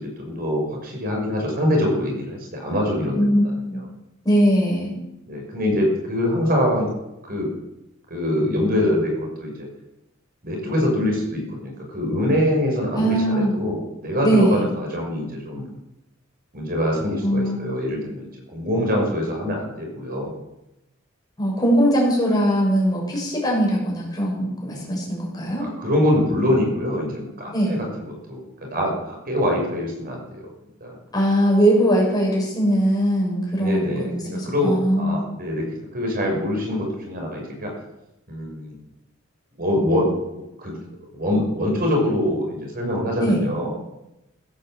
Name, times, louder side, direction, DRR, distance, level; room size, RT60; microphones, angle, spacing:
voice 1, 0.0-3.8 5.3-6.9 7.2-7.5 8.1-9.7 10.4-15.6 16.5-20.3 25.6-30.5 30.8-31.0 33.6-37.7 38.3-38.7 39.6-40.1 40.6-40.8 41.1-43.8, left 1 dB, 45° right, 0 dB, 5.7 m, -24 dB
voice 2, 3.2-3.8 4.2-4.9 12.9-13.5 14.2-14.6 17.2-17.6 21.4-25.7 27.5-27.7 31.1-35.2 43.2-43.4, equal, 20° left, -3 dB, 6.9 m, -20 dB
16.0 x 11.0 x 7.8 m, 0.89 s
head